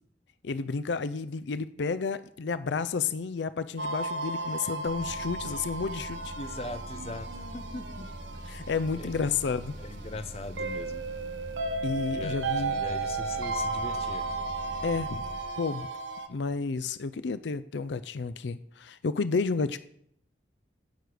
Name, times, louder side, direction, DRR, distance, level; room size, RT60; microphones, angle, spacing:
voice 1, 0.4-6.3 8.5-9.8 11.8-12.8 14.8-15.2 15.6-15.9 16.3-19.8, left 4 dB, 75° left, 14 dB, 0.5 m, -31 dB
sound 1, 3.8-16.3, right 3 dB, 90° right, 0.9 m, -35 dB
sound 2, 4.9-15.4, right 1 dB, 55° right, 1.9 m, -43 dB
voice 2, 6.4-8.1 8.3-8.5 8.9-9.3 9.8-11.1 12.1-14.3, left 2 dB, 35° left, 10 dB, 0.6 m, -41 dB
16.0 x 6.4 x 5.0 m, 0.68 s
head